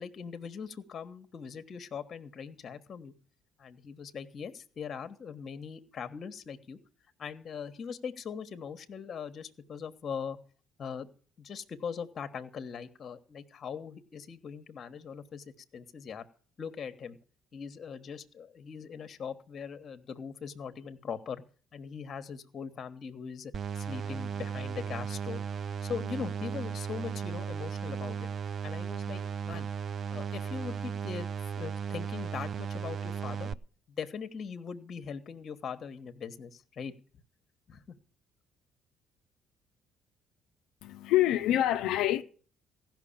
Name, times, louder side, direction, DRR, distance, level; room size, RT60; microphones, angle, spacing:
voice 1, 0.0-3.1 3.6-6.8 7.2-10.4 10.8-11.1 11.4-15.4 15.7-16.3 16.6-17.2 17.5-21.4 21.7-25.4 25.8-28.3 28.6-29.7 30.1-31.3 31.5-33.5 33.9-36.9 37.7-38.0, left 6 dB, 50° left, 1.3 m, -41 dB
sound 1, 23.5-33.5, right 7 dB, 50° right, 0.5 m, -36 dB
voice 2, 40.8-42.2, left 13 dB, 75° left, 0.6 m, -26 dB
15.5 x 6.0 x 8.7 m
hypercardioid pair, 60°, 0 cm